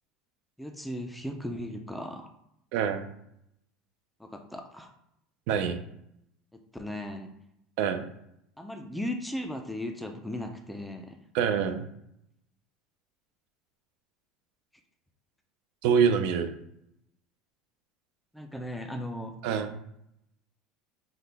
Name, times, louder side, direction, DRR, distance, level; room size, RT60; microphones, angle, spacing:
voice 1, 0.6-2.3 4.2-4.9 6.5-7.3 8.6-11.2 18.3-19.4, left 1 dB, ahead, 4 dB, 0.4 m, -37 dB
voice 2, 2.7-3.0 5.5-5.8 7.8-8.0 11.3-11.8 15.8-16.5 19.4-19.8, right 7 dB, 60° right, 8 dB, 0.5 m, -25 dB
5.7 x 2.2 x 3.3 m, 0.76 s
cardioid pair, 160°, 0 cm